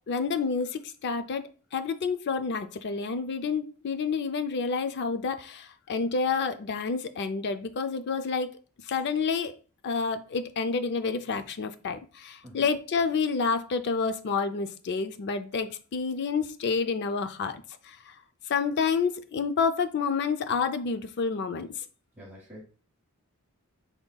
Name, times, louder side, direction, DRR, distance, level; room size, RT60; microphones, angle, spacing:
voice 1, 0.1-8.5 8.9-9.5 9.8-18.0 18.5-21.7, left 5 dB, 50° left, 0.4 m, -29 dB
voice 2, 22.1-22.6, equal, 10° right, 1.1 m, -46 dB
5.5 x 3.5 x 2.3 m
head